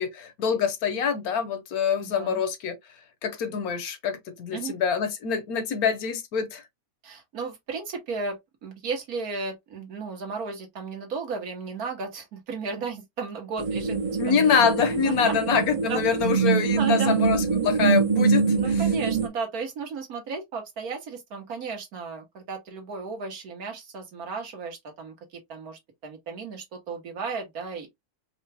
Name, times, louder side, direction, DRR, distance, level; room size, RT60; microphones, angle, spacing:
voice 1, 0.0-2.8 3.2-6.6 14.2-18.8, left 6 dB, 80° left, 1.4 m, -25 dB
voice 2, 2.0-2.4 4.5-4.7 7.0-14.0 14.2-14.3 15.0-15.4 15.9-16.3 16.8-17.2 18.5-27.9, right 4 dB, 80° right, 1.7 m, -34 dB
sound 1, 13.6-19.3, right 5 dB, 60° right, 0.3 m, -24 dB
4.7 x 2.2 x 3.4 m
omnidirectional pair, 1.5 m